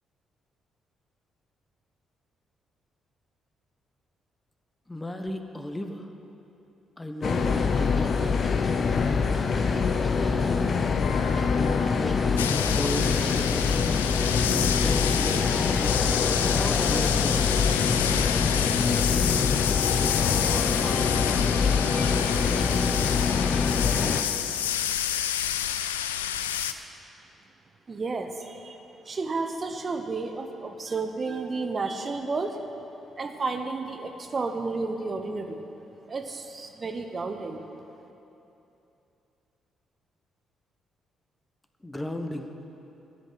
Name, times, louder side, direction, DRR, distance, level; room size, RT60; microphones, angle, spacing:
voice 1, 4.9-6.1 7.0-8.1 10.1-11.0 11.2-13.8 14.5-15.7 16.4-17.7 41.8-42.5, left 1 dB, 15° left, 6 dB, 1.2 m, -35 dB
sound 1, 7.2-24.2, left 5 dB, 45° left, 0.7 m, -24 dB
sound 2, 7.4-23.7, right 1 dB, 10° right, 1.7 m, -43 dB
sound 3, 12.4-26.7, left 10 dB, 80° left, 0.4 m, -29 dB
voice 2, 27.9-28.8 29.1-32.6 33.2-35.6 36.1-37.7, right 3 dB, 35° right, 6 dB, 1.0 m, -32 dB
14.0 x 8.3 x 8.3 m, 2.9 s
figure-of-eight pair, 40°, 0 cm